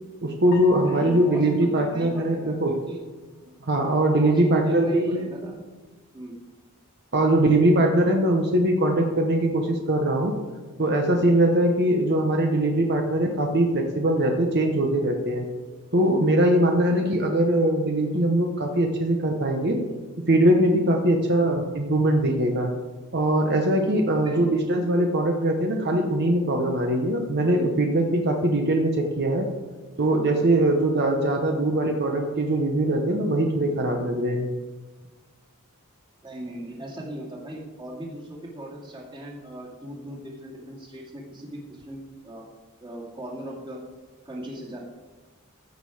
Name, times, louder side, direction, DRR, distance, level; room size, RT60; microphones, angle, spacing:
voice 1, 0.2-2.8 3.7-5.2 7.1-10.3 10.8-15.4 15.9-19.8 20.3-22.7 23.1-29.5 30.0-34.5, right 1 dB, 50° right, 3 dB, 1.0 m, -22 dB
sound 1, 0.5-3.0, left 5 dB, 60° left, 1.7 m, -43 dB
voice 2, 0.8-3.0 4.2-5.5 6.1-6.4 16.9-17.0 21.4-21.5 24.2-24.5 27.4-27.7 36.2-42.5 42.8-43.8 44.2-44.8, right 1 dB, 20° right, -3 dB, 2.3 m, -38 dB
15.0 x 6.4 x 4.8 m, 1.3 s
head